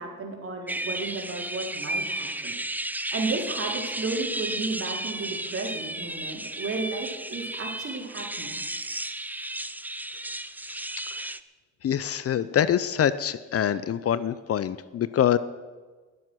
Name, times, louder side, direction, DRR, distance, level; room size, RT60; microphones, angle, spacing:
voice 1, 0.0-2.5 3.1-8.5, right 3 dB, 45° right, 0 dB, 4.0 m, -33 dB
sound 1, 0.7-11.4, right 1 dB, 5° right, 0.5 m, -33 dB
voice 2, 11.8-15.4, left 9 dB, 50° left, 15 dB, 0.6 m, -25 dB
20.5 x 7.7 x 6.3 m, 1.4 s
cardioid pair, 90°, 30 cm